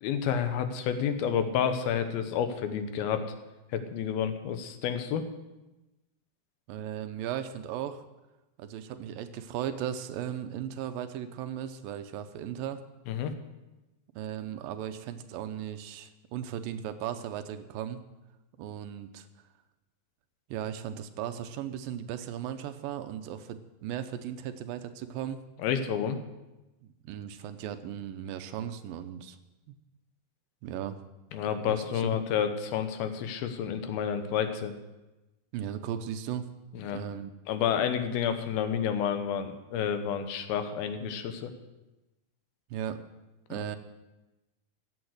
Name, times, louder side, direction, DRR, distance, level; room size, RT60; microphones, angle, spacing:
voice 1, 0.0-3.3 3.7-5.3 13.1-13.3 25.6-26.2 31.3-34.7 36.7-37.0 37.5-41.5 43.5-43.7, left 8 dB, 85° left, 8 dB, 2.9 m, -30 dB
voice 2, 6.7-8.0 8.6-12.8 14.2-18.0 18.6-19.3 20.5-25.4 26.8-29.4 29.7-29.8 30.6-31.0 32.0-32.2 35.5-36.5 36.9-37.3 42.7-43.0 43.5-43.8, right 10 dB, 80° right, 9 dB, 2.4 m, -36 dB
15.0 x 8.1 x 6.5 m, 1.0 s
omnidirectional pair, 4.2 m